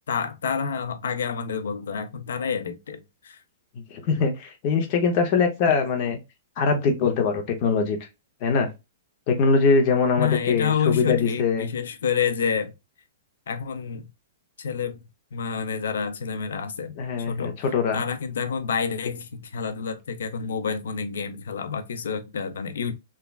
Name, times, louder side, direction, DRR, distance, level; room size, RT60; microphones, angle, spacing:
voice 1, 0.1-3.4 10.2-12.7 13.5-14.1 14.6-15.0 15.3-17.0 17.3-17.6 17.9-22.9, left 6 dB, 80° left, 0.5 m, -28 dB
voice 2, 3.8-6.2 6.6-8.0 8.4-8.7 9.3-11.7 17.0-18.0, left 5 dB, 30° left, 0.6 m, -22 dB
3.2 x 2.3 x 2.2 m
hypercardioid pair, 175°, 0 cm